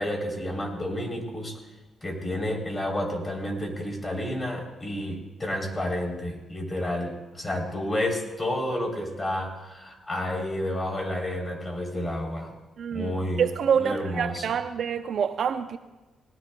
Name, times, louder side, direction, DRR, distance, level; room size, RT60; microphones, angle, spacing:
voice 1, 0.0-1.6 2.0-12.5 12.9-13.5 13.8-14.5, left 1 dB, 25° left, 2 dB, 3.4 m, -30 dB
voice 2, 12.8-15.8, right 7 dB, 65° right, 10 dB, 0.6 m, -27 dB
19.0 x 18.0 x 2.3 m, 1.1 s
cardioid pair, 85°, 0 cm